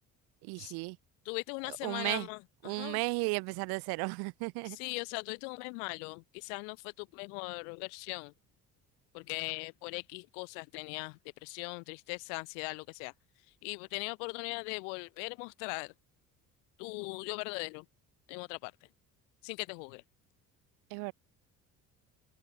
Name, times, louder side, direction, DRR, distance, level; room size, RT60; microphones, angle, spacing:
voice 1, 0.4-1.0 1.7-2.3 2.6-4.8 20.9-21.1, right 30 dB, 55° right, 0.8 m, -34 dB
voice 2, 1.3-3.0 4.6-8.3 9.1-13.1 13.6-15.9 16.8-17.8 18.3-18.7 19.4-20.0, left 38 dB, 55° left, 0.5 m, -40 dB
figure-of-eight pair, 50°, 46 cm